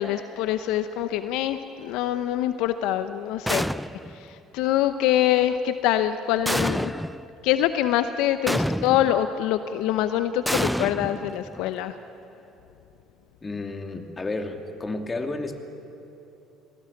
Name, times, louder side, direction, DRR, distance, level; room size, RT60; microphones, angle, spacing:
voice 1, 0.0-3.7 4.1-6.9 7.4-12.0, left 12 dB, 70° left, 11 dB, 0.9 m, -25 dB
sound 1, 3.5-4.2 6.5-7.2 8.5-9.2 10.5-11.7, equal, ahead, 0.6 m, -27 dB
voice 2, 13.4-15.6, left 2 dB, 25° left, 6 dB, 2.8 m, -31 dB
28.0 x 19.0 x 9.9 m, 3.0 s
hypercardioid pair, 65°, 0 cm